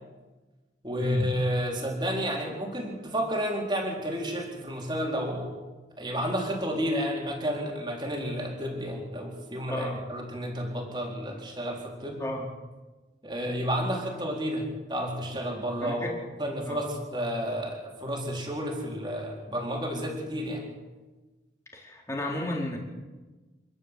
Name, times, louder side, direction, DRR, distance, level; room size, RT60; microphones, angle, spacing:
voice 1, 0.8-5.6 6.0-12.2 13.2-16.1 16.4-20.7, equal, 25° right, 0 dB, 4.1 m, -31 dB
voice 2, 9.7-10.0 12.2-12.5 15.8-16.1 16.6-16.8 21.7-22.8, left 1 dB, 15° left, -1 dB, 4.0 m, -33 dB
28.0 x 12.0 x 8.3 m, 1.2 s
head